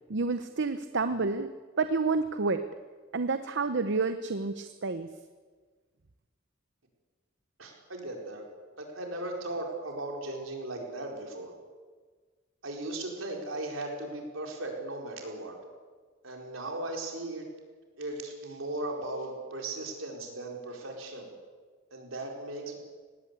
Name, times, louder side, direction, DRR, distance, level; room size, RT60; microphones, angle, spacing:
voice 1, 0.1-1.5 1.8-2.6 3.1-5.1, right 4 dB, 60° right, 10 dB, 0.8 m, -29 dB
voice 2, 7.6-8.4 8.8-11.5 12.6-15.5 16.2-17.4 18.0-21.3 21.9-22.8, right 2 dB, 75° right, 1 dB, 4.6 m, -37 dB
19.5 x 17.0 x 8.3 m, 1.5 s
head